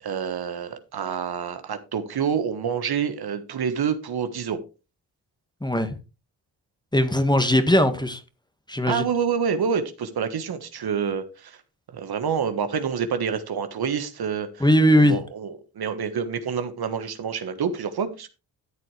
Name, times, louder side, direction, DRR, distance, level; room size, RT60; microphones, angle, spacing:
voice 1, 0.0-4.6 8.9-11.6 11.9-14.7 15.0-18.3, right 7 dB, 60° right, 1.4 m, -27 dB
voice 2, 5.6-5.9 6.9-8.2 8.7-9.1 14.6-15.2, equal, 10° left, 1.6 m, -19 dB
13.0 x 7.7 x 3.2 m
supercardioid pair, 55°, 42 cm